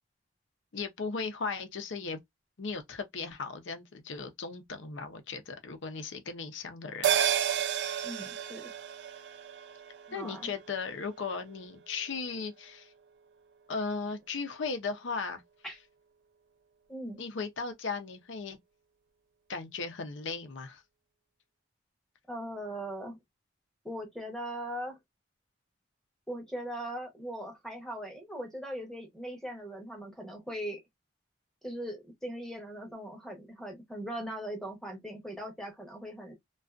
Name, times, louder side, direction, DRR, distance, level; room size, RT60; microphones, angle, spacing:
voice 1, 0.7-2.2 2.6-7.1 7.5-8.1 10.1-12.9 13.7-15.4 17.2-18.6 19.5-20.8, left 4 dB, 75° left, 0.6 m, -37 dB
sound 1, 7.0-11.8 12.1-12.2, right 9 dB, 60° right, 0.3 m, -32 dB
voice 2, 8.0-8.7 10.1-10.5 15.6-15.8 16.9-17.2 22.3-23.2 23.8-25.0 26.3-30.8 31.6-36.3, equal, ahead, 0.7 m, -40 dB
2.4 x 2.3 x 2.3 m
head